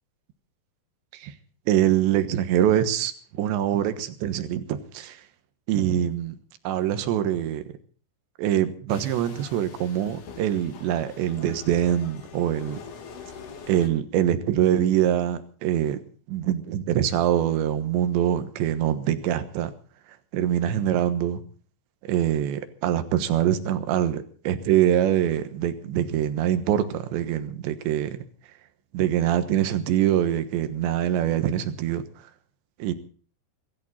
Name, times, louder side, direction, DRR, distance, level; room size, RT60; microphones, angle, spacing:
voice 1, 1.7-3.1 3.4-5.2 5.7-6.4 6.7-7.6 8.4-12.8 13.7-16.0 16.3-19.7 20.3-21.4 22.0-28.3 28.9-32.0 32.8-32.9, right 11 dB, 90° right, 10 dB, 3.6 m, -24 dB
sound 1, 8.9-13.9, left 6 dB, 55° left, 3.2 m, -44 dB
23.0 x 14.0 x 4.3 m, 0.42 s
omnidirectional pair, 5.0 m